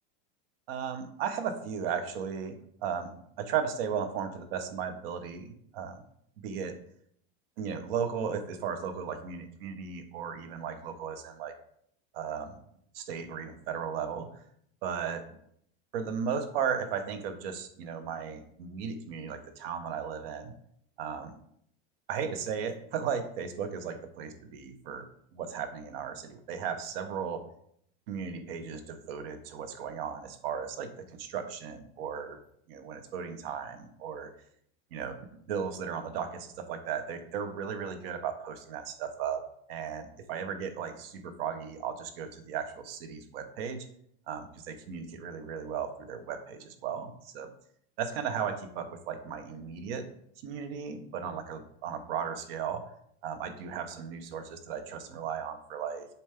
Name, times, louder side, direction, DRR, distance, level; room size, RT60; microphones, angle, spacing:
voice 1, 0.7-3.1 3.4-6.0 6.4-6.8 7.6-11.5 12.1-12.6 12.9-14.4 14.8-15.3 15.9-20.5 21.0-21.3 22.1-27.4 28.1-32.4 32.7-34.3 34.9-35.2 35.5-39.4 39.7-43.9 44.3-47.5 48.0-50.1 50.4-52.8 53.2-56.1, right 7 dB, 65° right, 9 dB, 1.0 m, -36 dB
7.1 x 4.5 x 3.4 m, 0.67 s
supercardioid pair, 155°, 31 cm